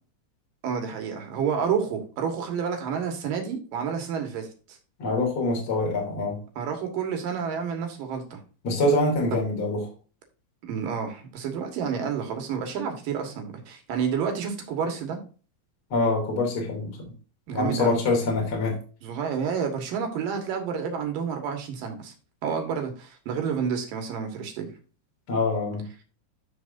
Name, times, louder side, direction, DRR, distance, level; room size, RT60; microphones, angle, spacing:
voice 1, 0.6-4.8 6.6-8.4 9.3-9.4 10.6-15.2 17.5-18.0 19.0-22.1 22.4-24.7, right 6 dB, 60° right, 4 dB, 2.9 m, -29 dB
voice 2, 5.0-6.4 8.6-9.8 15.9-17.1 17.5-18.8 25.3-25.8, left 2 dB, 30° left, 0 dB, 3.2 m, -25 dB
14.0 x 4.7 x 2.7 m, 0.37 s
omnidirectional pair, 5.2 m